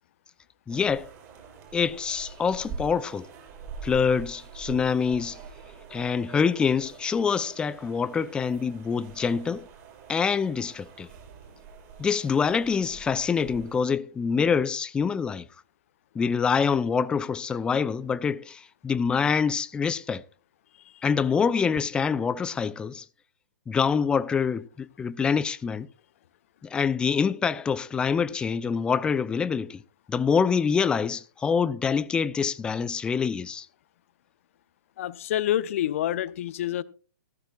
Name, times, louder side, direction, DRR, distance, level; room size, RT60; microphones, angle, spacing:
voice 1, 0.7-1.1 1.7-3.3 3.8-5.4 5.9-9.7 10.1-11.1 12.0-15.5 16.1-20.2 21.0-23.0 23.7-25.9 26.6-29.8 30.1-33.7, left 6 dB, 10° left, 0.4 m, -25 dB
sound 1, 0.7-13.8, right 5 dB, 30° right, 5.3 m, -44 dB
voice 2, 35.0-36.8, left 12 dB, 45° left, 0.8 m, -28 dB
15.5 x 14.5 x 2.4 m
figure-of-eight pair, 120°, 10 cm